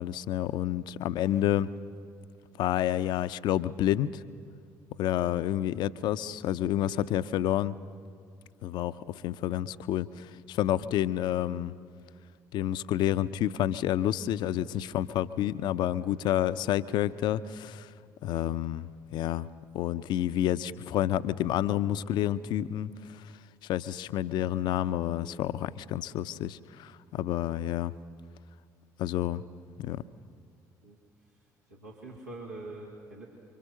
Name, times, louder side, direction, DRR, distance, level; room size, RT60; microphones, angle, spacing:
voice 1, 0.0-1.7 2.6-4.1 5.0-7.8 8.6-9.0 9.2-11.7 12.5-17.9 18.2-19.5 19.7-23.2 23.7-27.9 29.0-29.4 29.8-30.0, left 12 dB, 55° left, 14 dB, 0.6 m, -29 dB
voice 2, 1.2-1.5 6.8-7.2 15.9-16.3 26.3-26.4 30.8-31.0 31.7-33.3, right 2 dB, 85° right, -3 dB, 2.3 m, -45 dB
27.5 x 24.5 x 6.6 m, 2.2 s
figure-of-eight pair, 50°, 9 cm